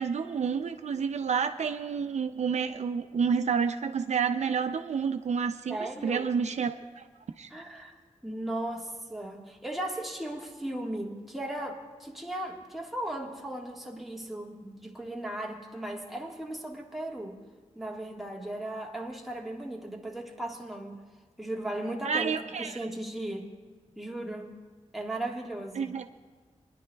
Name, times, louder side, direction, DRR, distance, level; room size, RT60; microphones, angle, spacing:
voice 1, 0.0-7.1 7.4-7.5 22.0-22.8 25.8-26.1, right 6 dB, 70° right, 8 dB, 0.4 m, -29 dB
voice 2, 5.7-6.3 7.5-8.0 8.2-17.4 17.7-21.0 21.4-23.5 24.0-24.6 24.9-25.9, right 1 dB, ahead, -1 dB, 1.5 m, -36 dB
26.5 x 10.5 x 2.3 m, 1.4 s
wide cardioid pair, 85°, 12 cm